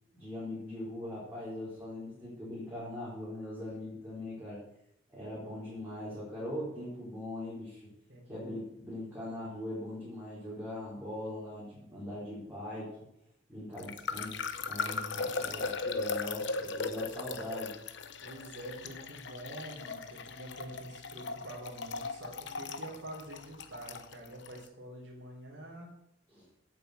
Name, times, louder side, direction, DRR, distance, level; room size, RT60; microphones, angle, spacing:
voice 1, 0.1-4.6 5.1-7.9 8.3-12.9 13.5-17.8 26.3-26.4, left 1 dB, 10° right, -9 dB, 4.6 m, -41 dB
voice 2, 8.1-8.6 18.2-25.9, right 1 dB, 75° right, -3 dB, 3.9 m, -46 dB
sound 1, 13.8-24.6, left 4 dB, 65° left, 0.9 m, -38 dB
8.8 x 8.7 x 8.2 m, 0.79 s
head